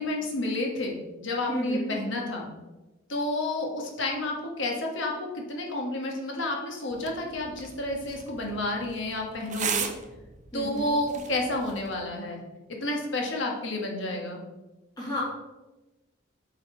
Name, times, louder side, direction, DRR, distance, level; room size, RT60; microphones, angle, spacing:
voice 1, 0.0-2.5 3.1-9.9 10.5-12.4 12.8-14.4, left 2 dB, 65° left, 0 dB, 1.5 m, -30 dB
voice 2, 1.5-2.0 10.5-10.9 15.0-15.2, left 1 dB, 20° left, -6 dB, 2.0 m, -32 dB
sound 1, 6.9-11.9, right 7 dB, 35° right, 0.6 m, -37 dB
8.0 x 4.1 x 4.5 m, 1.1 s
head